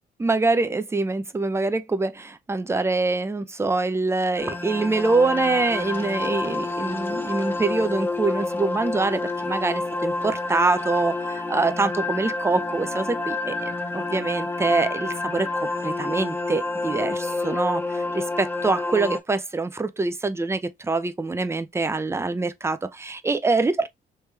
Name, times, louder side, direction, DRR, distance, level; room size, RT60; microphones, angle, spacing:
voice 1, 0.2-13.6 13.9-23.9, right 3 dB, 15° right, 0.5 m, -25 dB
sound 1, 4.4-19.2, left 3 dB, 10° left, 0.8 m, -28 dB
3.3 x 3.1 x 3.2 m
cardioid pair, 90°, 20 cm